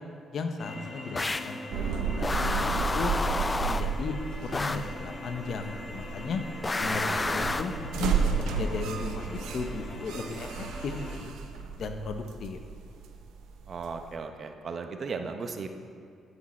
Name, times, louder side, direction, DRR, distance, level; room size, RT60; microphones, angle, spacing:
voice 1, 0.3-3.1 3.6-6.4 6.8-10.5 10.8-11.3 11.8-12.6, left 4 dB, 60° left, 7 dB, 0.7 m, -36 dB
sound 1, 0.6-11.2, left 2 dB, 40° left, 1.1 m, -42 dB
sound 2, 1.1-1.6 2.2-4.0 4.5-4.9 6.6-7.8, left 2 dB, 20° left, 0.3 m, -30 dB
sound 3, 1.7-14.1, right 6 dB, 85° right, 0.6 m, -33 dB
voice 2, 6.8-7.6 13.7-15.7, right 4 dB, 50° right, 6 dB, 0.7 m, -36 dB
9.7 x 6.3 x 4.2 m, 2.3 s
cardioid pair, 90°, 0 cm